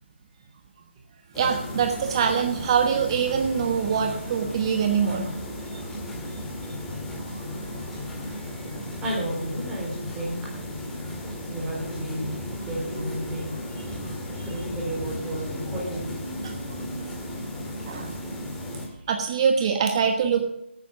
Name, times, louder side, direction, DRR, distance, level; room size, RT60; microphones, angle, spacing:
sound 1, 1.3-18.9, left 1 dB, 5° left, 2.0 m, -35 dB
voice 1, 1.3-5.3 5.7-5.8 17.8-18.2 19.1-20.4, right 7 dB, 25° right, 4 dB, 1.1 m, -24 dB
voice 2, 9.0-10.4 11.5-13.5 14.4-16.2, right 1 dB, 10° right, -4 dB, 3.9 m, -32 dB
12.5 x 9.3 x 5.2 m, 0.82 s
figure-of-eight pair, 160°, 6 cm